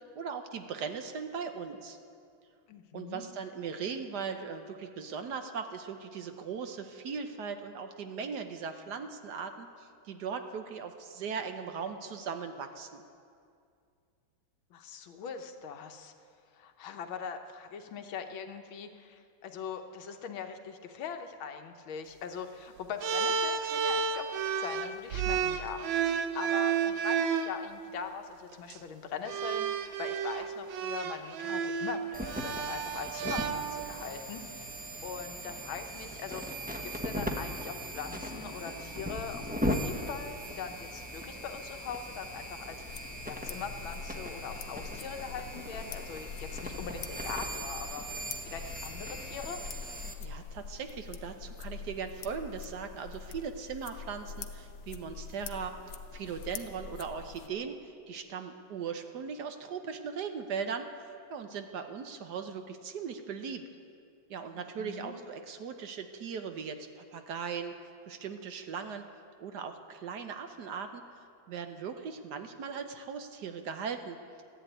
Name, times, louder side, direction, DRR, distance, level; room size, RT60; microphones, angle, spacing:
voice 1, 0.2-2.0 2.9-13.0 50.2-55.7 56.1-63.6 64.3-67.8 68.1-69.1 69.4-71.0 71.5-74.4, right 6 dB, 65° right, 7 dB, 1.3 m, -39 dB
voice 2, 2.7-3.2 14.7-16.1 16.5-24.3 24.6-34.7 35.0-48.0 48.4-49.6 64.6-65.2, left 6 dB, 90° left, 6 dB, 1.8 m, -42 dB
sound 1, 23.0-27.5 28.5-28.8 29.3-34.1, right 6 dB, 80° right, 1.6 m, -31 dB
sound 2, 32.1-50.1, equal, 10° right, 0.6 m, -39 dB
sound 3, 42.8-57.5, left 6 dB, 70° left, 1.5 m, -45 dB
14.5 x 11.0 x 9.1 m, 2.4 s
omnidirectional pair, 2.1 m